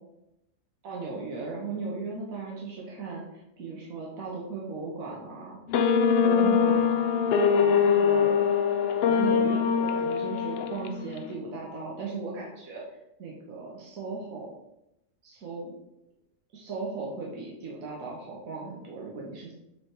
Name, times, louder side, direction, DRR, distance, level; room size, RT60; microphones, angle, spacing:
voice 1, 0.8-5.6 6.2-7.2 7.6-8.4 9.0-14.5 15.2-15.7 16.5-19.5, right 4 dB, 85° right, -3 dB, 1.5 m, -37 dB
sound 1, 5.7-11.2, left 6 dB, 60° left, 0.7 m, -23 dB
7.5 x 3.4 x 4.5 m, 0.87 s
omnidirectional pair, 1.4 m